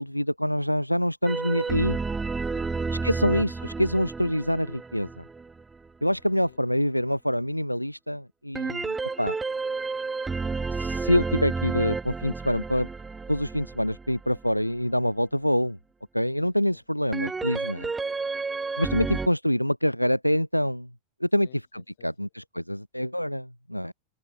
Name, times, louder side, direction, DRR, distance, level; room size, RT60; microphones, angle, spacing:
voice 1, 0.0-2.0 3.0-5.2 6.0-9.4 10.7-12.9 13.3-15.8 16.1-17.9 18.8-20.9 21.2-21.5 22.0-23.9, equal, 90° left, 0.5 m, -26 dB
sound 1, 1.2-5.9 8.5-14.6 17.1-19.3, right 4 dB, 10° right, 0.4 m, -31 dB
voice 2, 2.4-3.3 6.4-6.7 16.3-16.8 17.2-17.3 18.8-19.1 21.4-22.3, left 14 dB, 55° left, 5.8 m, -55 dB
figure-of-eight pair, 90°, 0 cm